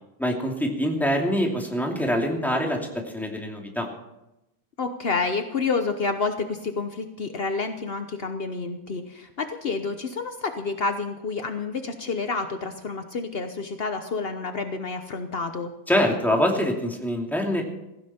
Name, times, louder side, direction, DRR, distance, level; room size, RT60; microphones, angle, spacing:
voice 1, 0.2-3.9 15.9-17.6, equal, ahead, 0 dB, 2.4 m, -24 dB
voice 2, 4.8-15.7, left 4 dB, 70° left, 7 dB, 0.5 m, -29 dB
16.5 x 15.5 x 4.4 m, 0.91 s
omnidirectional pair, 2.4 m